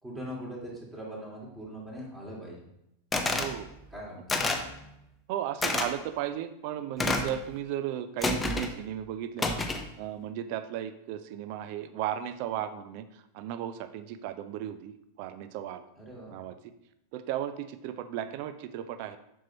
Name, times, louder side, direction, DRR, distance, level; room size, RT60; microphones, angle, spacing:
voice 1, 0.0-2.6 3.9-4.4 16.0-16.4, equal, 15° right, -4 dB, 2.3 m, -41 dB
sound 1, 3.1-3.5 4.3-4.7 5.6-5.9 7.0-7.4 8.2-8.7 9.4-9.9, left 2 dB, 10° left, 0.6 m, -28 dB
voice 2, 3.3-3.7 5.3-9.6 10.0-13.0 13.3-15.8 16.3-16.6 17.1-19.2, right 11 dB, 45° right, 11 dB, 0.4 m, -35 dB
7.4 x 5.5 x 2.9 m, 0.82 s
figure-of-eight pair, 90°, 0 cm